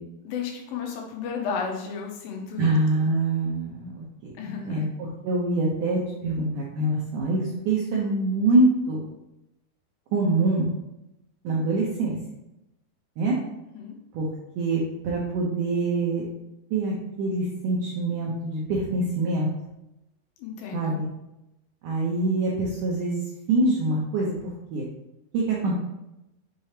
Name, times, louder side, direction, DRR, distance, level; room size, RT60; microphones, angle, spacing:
voice 1, 0.2-3.1 4.4-4.8 13.7-14.0 20.4-21.0, left 6 dB, 90° left, 1 dB, 3.0 m, -33 dB
voice 2, 2.6-4.3 4.6-4.9 5.2-9.0 10.1-10.7 11.4-12.2 13.2-13.4 14.1-14.3 14.6-16.2 16.7-19.5 20.7-21.1 21.8-23.2 23.5-24.9 25.3-25.7, right 2 dB, 80° right, -4 dB, 1.8 m, -25 dB
6.8 x 4.9 x 2.9 m, 0.91 s
omnidirectional pair, 4.8 m